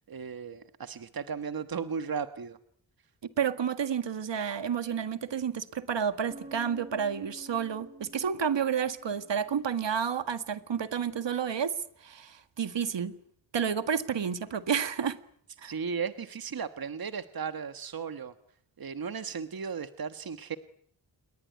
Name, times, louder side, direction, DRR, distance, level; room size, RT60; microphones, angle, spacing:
voice 1, 0.1-2.6 15.6-18.3 18.8-20.6, right 6 dB, 50° right, 1.4 m, -35 dB
voice 2, 3.4-13.1 13.5-15.2 15.6-15.7, right 7 dB, 65° right, 1.9 m, -30 dB
Bass guitar, 6.3-9.9, right 2 dB, 15° right, 2.1 m, -50 dB
28.5 x 22.0 x 9.4 m
wide cardioid pair, 115°, 46 cm